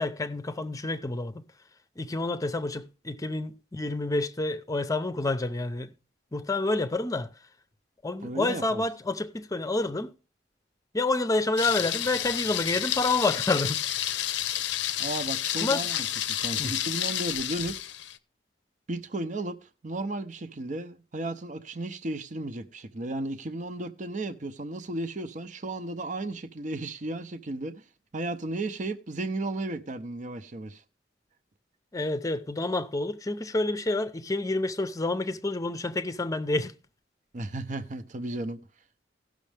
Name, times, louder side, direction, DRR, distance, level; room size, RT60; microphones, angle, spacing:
voice 1, 0.0-1.4 2.0-5.9 6.3-7.3 8.0-10.1 10.9-13.8 15.5-15.8 16.6-16.8 31.9-36.7, left 2 dB, 20° left, 0.6 m, -28 dB
voice 2, 8.2-8.8 15.0-17.8 18.9-19.6 19.8-27.7 28.1-30.8 37.3-38.6, right 2 dB, 45° right, 0.7 m, -34 dB
Thunder, 11.6-18.2, left 12 dB, 75° left, 0.6 m, -30 dB
17.0 x 6.3 x 3.3 m
head